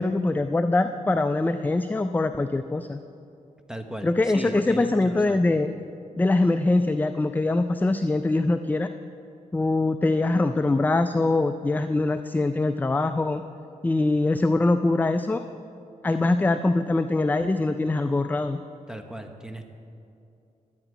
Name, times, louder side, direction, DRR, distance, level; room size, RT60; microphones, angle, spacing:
voice 1, 0.0-3.0 4.0-5.7 6.2-8.9 9.5-13.4 13.8-15.4 16.0-18.6, left 2 dB, 15° left, 9 dB, 0.4 m, -23 dB
voice 2, 3.7-5.4 18.9-19.6, equal, 5° right, 5 dB, 1.0 m, -37 dB
12.0 x 9.0 x 4.9 m, 2.6 s
cardioid pair, 70°, 14 cm